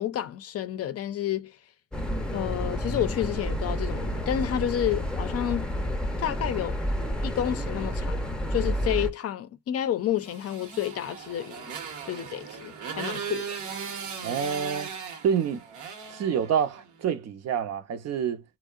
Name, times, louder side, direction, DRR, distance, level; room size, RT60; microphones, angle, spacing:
voice 1, 0.0-1.6 2.3-5.7 6.2-6.8 7.2-8.2 8.5-11.7 12.0-13.5, left 11 dB, 55° left, 0.5 m, -30 dB
sound 1, 1.9-9.1, equal, 5° left, 0.6 m, -30 dB
Motorcycle, 10.2-16.9, right 6 dB, 75° right, 0.8 m, -38 dB
voice 2, 14.2-14.9 15.2-15.6 16.1-18.4, right 7 dB, 60° right, 0.6 m, -27 dB
2.6 x 2.0 x 2.4 m
cardioid pair, 90°, 30 cm